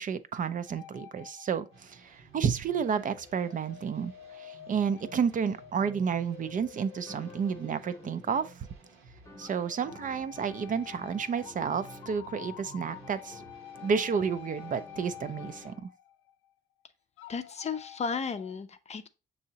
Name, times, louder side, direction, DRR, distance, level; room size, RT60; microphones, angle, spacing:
voice 1, 0.0-8.7 9.4-13.4 13.8-15.9, right 6 dB, 40° right, 0.4 m, -31 dB
sound 1, 0.7-2.0 3.0-8.9 9.4-16.5 17.2-18.5, left 11 dB, 85° left, 0.4 m, -49 dB
sound 2, 1.6-1.7 2.7-3.8 4.2-5.2 7.1-8.6 9.2-15.8, left 2 dB, 15° left, 0.8 m, -53 dB
sound 3, 1.7-15.7, right 6 dB, 80° right, 1.1 m, -55 dB
voice 2, 17.3-19.1, left 5 dB, 35° left, 0.5 m, -34 dB
6.5 x 2.8 x 2.8 m
cardioid pair, 90°, 20 cm